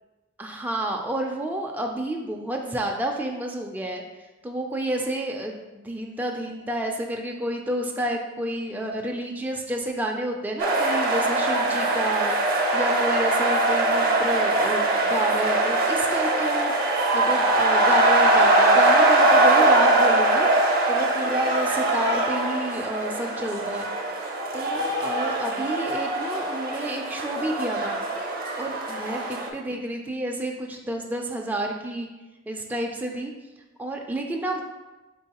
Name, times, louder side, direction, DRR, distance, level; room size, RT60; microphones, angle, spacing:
voice 1, 0.4-12.3 12.7-16.7 17.1-20.5 20.9-23.9 24.2-28.0 28.6-29.2 29.5-32.1 32.5-33.3 33.8-34.6, right 1 dB, 10° right, 1 dB, 0.3 m, -30 dB
sound 1, 10.6-29.5, right 2 dB, 45° right, 0.6 m, -22 dB
4.5 x 3.7 x 2.8 m, 1.1 s
head